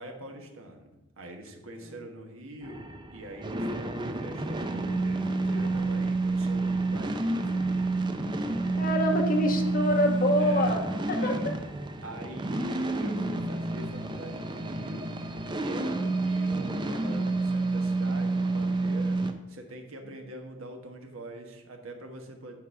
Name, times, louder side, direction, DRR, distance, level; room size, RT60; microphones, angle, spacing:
voice 1, 0.0-8.0 10.4-10.9 11.2-11.5 12.0-15.1 15.6-19.2 19.5-22.6, right 1 dB, 70° right, 3 dB, 1.4 m, -44 dB
sound 1, 2.6-19.3, right 2 dB, 20° right, 0.5 m, -29 dB
voice 2, 8.8-10.8 11.1-11.4, left 1 dB, 40° left, 2 dB, 1.2 m, -25 dB
10.5 x 4.1 x 5.5 m, 1.0 s
head